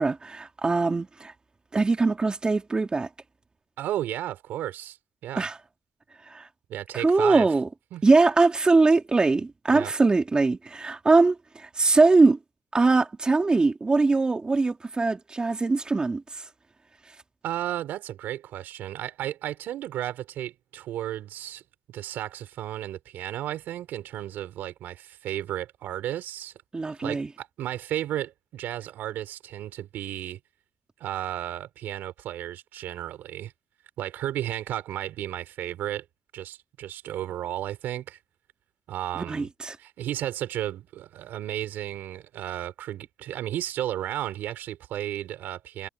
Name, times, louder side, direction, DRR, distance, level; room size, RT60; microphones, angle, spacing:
voice 1, 0.0-1.3 1.7-3.1 5.4-5.6 6.3-6.5 6.9-7.7 8.0-12.4 12.7-16.4 26.7-27.3 39.2-39.8, right 3 dB, 30° right, 3.2 m, -22 dB
voice 2, 3.8-5.0 5.2-5.5 6.7-7.5 7.9-8.0 9.7-9.9 17.4-21.6 21.9-26.5 27.0-30.4 31.0-33.5 34.0-36.0 36.3-38.2 38.9-39.5 39.8-45.9, right 12 dB, 80° right, 4.7 m, -33 dB
cardioid pair, 75°, 3 cm